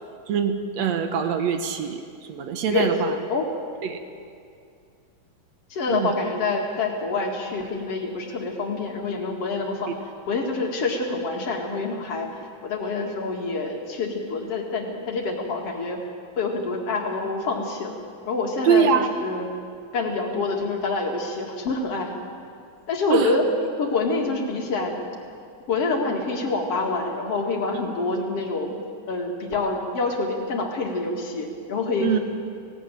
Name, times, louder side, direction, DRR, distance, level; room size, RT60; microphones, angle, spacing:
voice 1, 0.3-2.0 2.3-3.1 3.8-4.0 5.9-6.1 18.7-19.1 23.1-23.3 32.0-32.2, right 7 dB, 70° right, 7 dB, 2.2 m, -23 dB
voice 2, 5.7-9.9 10.3-12.3 12.6-16.0 16.4-18.0 18.3-19.5 19.9-22.1 22.9-23.4 23.8-24.9 25.7-28.7 29.1-32.2, left 3 dB, 55° left, 2 dB, 2.9 m, -26 dB
18.5 x 17.5 x 9.1 m, 2.3 s
omnidirectional pair, 3.3 m